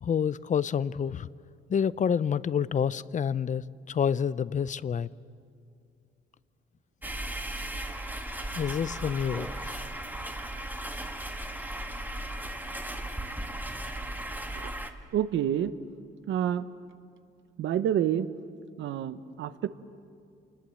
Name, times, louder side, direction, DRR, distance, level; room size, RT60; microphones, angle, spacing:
voice 1, 0.0-1.3 1.7-5.1 8.5-9.8, left 7 dB, 40° left, 0.6 m, -28 dB
sound 1, 7.0-14.9, right 1 dB, 10° right, 1.8 m, -36 dB
voice 2, 15.1-15.8 16.3-16.7 17.6-18.3 18.8-19.7, right 10 dB, 75° right, 1.0 m, -28 dB
27.5 x 20.5 x 7.7 m
cardioid pair, 90°, 20 cm